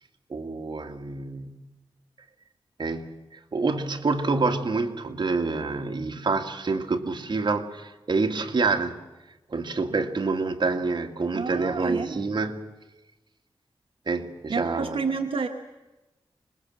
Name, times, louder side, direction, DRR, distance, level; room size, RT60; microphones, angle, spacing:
voice 1, 0.3-1.6 2.8-3.1 3.5-9.0 9.5-12.6 14.1-15.0, right 3 dB, 55° right, 4 dB, 1.9 m, -27 dB
voice 2, 11.3-12.2 14.5-15.5, right 4 dB, 75° right, 4 dB, 1.2 m, -29 dB
25.5 x 21.0 x 7.7 m, 1.1 s
wide cardioid pair, 95°, 9 cm